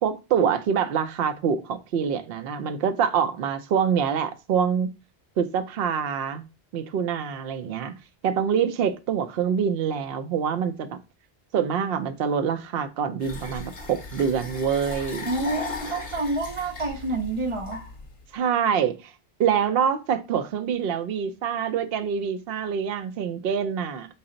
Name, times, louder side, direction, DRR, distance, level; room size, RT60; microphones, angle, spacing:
voice 1, 0.0-4.9 5.4-6.4 6.7-7.9 8.2-11.0 11.5-15.3 18.3-19.1 19.4-24.1, right 7 dB, 70° right, 0.8 m, -25 dB
sound 1, 13.2-18.3, left 4 dB, 35° left, 0.8 m, -37 dB
voice 2, 15.3-17.8, right 2 dB, 40° right, 0.6 m, -28 dB
5.6 x 2.0 x 3.8 m
omnidirectional pair, 1.0 m